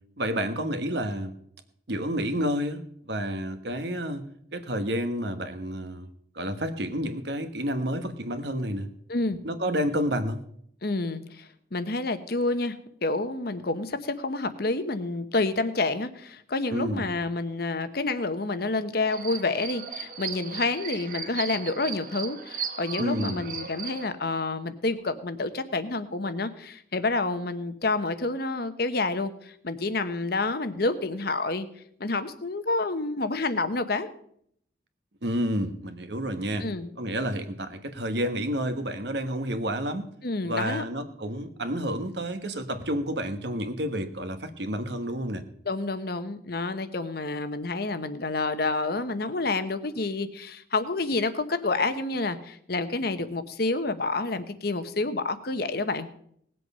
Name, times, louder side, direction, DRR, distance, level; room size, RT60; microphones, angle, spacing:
voice 1, 0.2-1.3 1.9-4.2 4.5-6.1 6.3-8.9 9.4-10.4 16.7-17.1 23.0-23.5 35.2-36.7 37.0-40.1 40.4-45.4, equal, 60° right, 9 dB, 1.3 m, -30 dB
voice 2, 10.8-12.8 13.0-31.7 32.0-34.1 36.6-36.9 40.2-40.8 45.7-56.1, left 3 dB, 55° left, 11 dB, 1.0 m, -29 dB
sound 1, 19.1-24.1, right 6 dB, 45° right, 1.0 m, -36 dB
18.5 x 7.8 x 5.5 m, 0.68 s
head